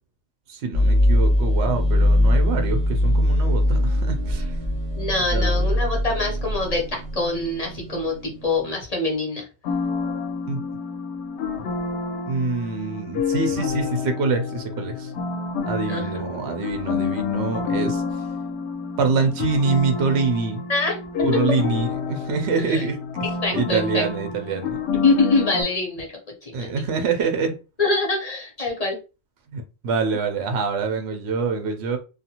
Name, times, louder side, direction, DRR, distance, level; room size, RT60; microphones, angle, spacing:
voice 1, 0.5-4.5 5.3-5.7 10.5-10.6 11.6-11.7 12.3-15.1 15.6-18.0 19.0-20.6 21.2-23.0 23.5-24.8 26.5-27.6 29.5-32.0, right 4 dB, 75° right, 0.9 m, -25 dB
sound 1, 0.7-8.7, left 1 dB, 35° right, 0.8 m, -21 dB
voice 2, 5.0-9.5 15.9-16.5 20.7-21.6 22.5-22.8 23.4-24.1 24.9-26.1 26.4-26.7 27.8-29.0, left 3 dB, 40° left, 0.9 m, -25 dB
sound 2, 9.6-25.6, left 5 dB, 90° left, 0.9 m, -28 dB
2.4 x 2.4 x 2.8 m
omnidirectional pair, 1.1 m